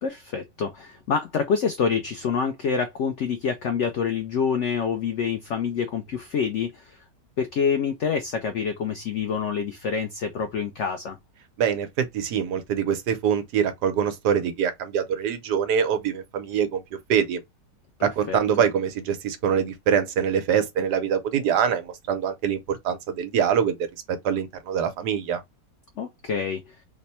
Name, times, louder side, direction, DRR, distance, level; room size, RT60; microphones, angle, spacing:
voice 1, 0.0-7.0 7.4-11.2 18.0-18.4 26.0-26.7, left 6 dB, 90° left, 0.6 m, -27 dB
voice 2, 11.6-16.8 17.1-17.4 18.0-23.7 24.1-25.4, right 8 dB, 75° right, 1.3 m, -24 dB
3.4 x 2.1 x 4.1 m
omnidirectional pair, 1.9 m